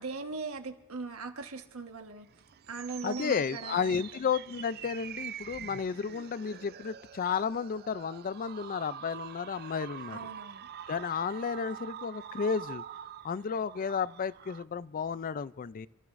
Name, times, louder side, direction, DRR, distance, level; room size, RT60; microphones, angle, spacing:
voice 1, 0.0-2.3 2.7-4.2 10.1-10.7, right 4 dB, 85° right, 5 dB, 1.4 m, -40 dB
sound 1, 2.3-14.6, right 9 dB, 45° right, 0.4 m, -45 dB
voice 2, 3.0-10.3 10.9-12.8 13.2-15.9, left 6 dB, 40° left, 17 dB, 0.4 m, -32 dB
29.5 x 14.0 x 2.5 m, 1.1 s
head